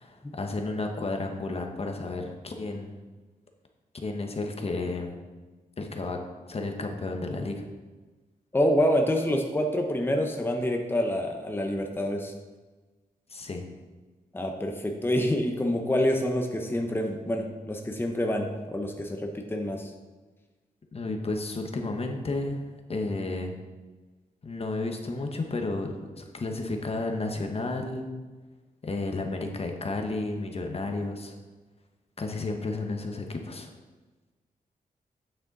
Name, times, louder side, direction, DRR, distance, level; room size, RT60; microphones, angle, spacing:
voice 1, 0.0-2.9 4.0-5.1 5.8-6.2 6.5-7.6 13.3-13.6 20.9-22.6 22.9-23.6 24.4-28.1 28.8-31.3 32.2-33.7, left 2 dB, 40° left, 3 dB, 1.0 m, -32 dB
voice 2, 8.5-12.3 14.3-19.9, equal, 15° left, 2 dB, 1.0 m, -27 dB
9.0 x 6.6 x 4.0 m, 1.3 s
cardioid pair, 85°, 15 cm